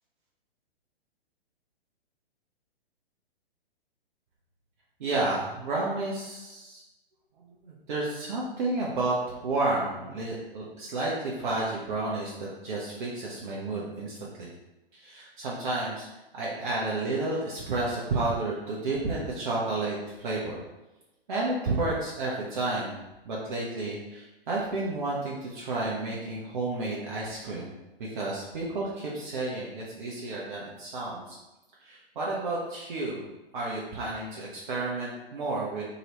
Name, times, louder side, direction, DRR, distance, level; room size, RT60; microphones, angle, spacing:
voice 1, 5.0-6.8 7.6-14.5 15.0-16.1 16.3-20.5 21.3-23.0 23.2-27.7 28.0-31.4 31.8-33.2 33.5-35.8, right 2 dB, 55° right, -5 dB, 0.7 m, -31 dB
2.9 x 2.8 x 2.9 m, 1.0 s
figure-of-eight pair, 115°, 30 cm